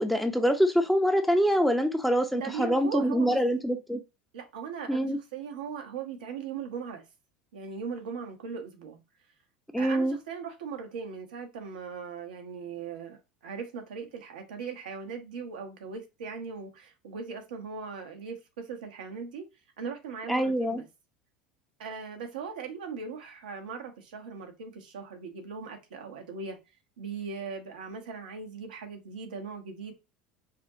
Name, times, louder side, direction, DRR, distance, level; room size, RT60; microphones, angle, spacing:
voice 1, 0.0-4.0 4.9-5.2 9.7-10.2 20.3-20.8, equal, ahead, 0.7 m, -25 dB
voice 2, 2.3-3.4 4.3-7.0 7.5-9.0 9.8-19.4 19.8-20.8 21.8-26.6 27.0-29.9, right 6 dB, 80° right, 1.0 m, -39 dB
5.0 x 2.3 x 2.8 m
hypercardioid pair, 80°, 4 cm